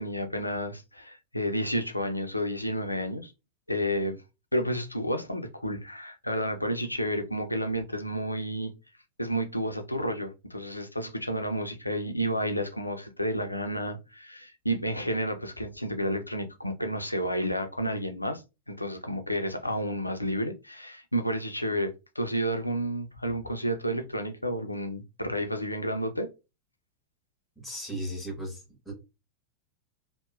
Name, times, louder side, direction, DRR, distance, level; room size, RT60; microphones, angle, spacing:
voice 1, 0.0-3.3 3.7-4.2 4.5-8.7 9.2-18.4 18.7-26.3, equal, 85° left, 0.4 m, -31 dB
voice 2, 27.6-28.9, equal, ahead, 1.2 m, -36 dB
2.8 x 2.1 x 2.3 m
figure-of-eight pair, 90°, 0 cm